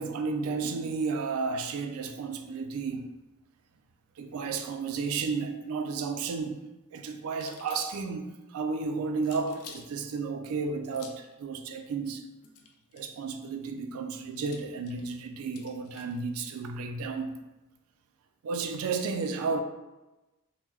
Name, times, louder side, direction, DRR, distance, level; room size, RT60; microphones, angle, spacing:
voice 1, 0.0-3.1 4.2-6.6 6.9-12.3 12.9-17.3 18.4-19.6, right 4 dB, 80° right, 0.3 m, -32 dB
sound 1, 7.3-8.2 9.2-9.9 10.8-11.3 12.4-13.2 14.4-16.2, left 6 dB, 85° left, 0.4 m, -50 dB
3.4 x 2.1 x 3.0 m
head